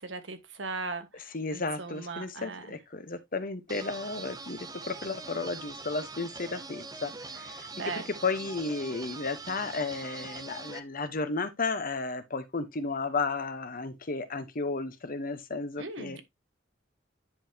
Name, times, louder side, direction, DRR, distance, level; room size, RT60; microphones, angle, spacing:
voice 1, 0.0-2.8 7.7-8.1 15.8-16.2, right 3 dB, 70° right, 1.3 m, -38 dB
voice 2, 1.3-4.6 4.8-7.7 8.2-16.2, left 3 dB, 45° left, 1.0 m, -33 dB
sound 1, 3.7-10.8, right 3 dB, 20° right, 0.7 m, -43 dB
9.9 x 5.4 x 2.8 m
head